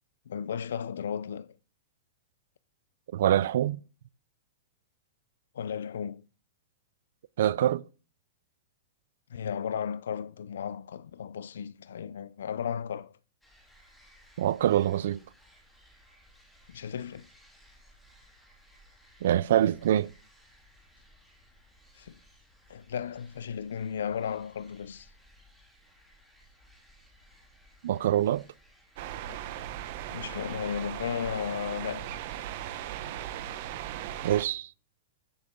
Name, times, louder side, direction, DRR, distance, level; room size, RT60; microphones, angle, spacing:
voice 1, 0.3-1.6 5.5-6.2 9.3-13.1 16.7-17.3 22.0-22.2 22.7-25.1 30.1-32.1, left 8 dB, 85° left, 0.5 m, -35 dB
voice 2, 3.1-3.8 7.4-7.8 14.4-15.2 19.2-20.1 27.8-28.5 34.2-34.7, right 11 dB, 70° right, 0.4 m, -25 dB
sound 1, 13.4-30.6, equal, 5° left, 3.4 m, -60 dB
sound 2, 29.0-34.4, right 11 dB, 55° right, 1.1 m, -38 dB
14.5 x 6.6 x 3.8 m
hypercardioid pair, 140°, 0 cm